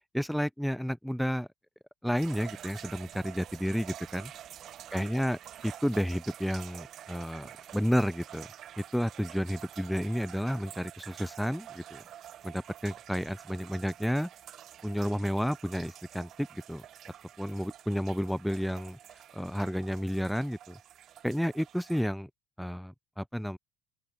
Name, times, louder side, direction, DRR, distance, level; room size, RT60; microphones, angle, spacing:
voice 1, 0.1-1.5 2.0-4.3 4.9-5.4 5.6-8.5 8.8-12.0 12.4-14.3 14.8-16.8 17.4-19.0 19.3-20.8 21.2-22.3 22.6-23.6, equal, ahead, 0.4 m, -31 dB
sound 1, 2.2-22.0, right 11 dB, 45° right, 1.0 m, -48 dB
open air
figure-of-eight pair, 60°, 0 cm